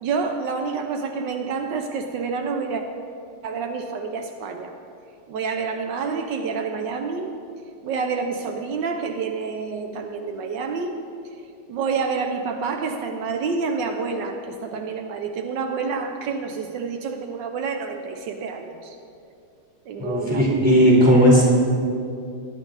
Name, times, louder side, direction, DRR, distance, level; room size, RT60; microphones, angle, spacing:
voice 1, 0.0-2.8 3.4-4.7 5.3-7.3 7.8-10.9 11.7-19.0 19.9-20.6, right 5 dB, 80° right, 5 dB, 1.4 m, -28 dB
voice 2, 20.0-21.5, equal, 5° right, -5 dB, 3.8 m, -16 dB
17.5 x 10.5 x 4.0 m, 2.5 s
omnidirectional pair, 1.9 m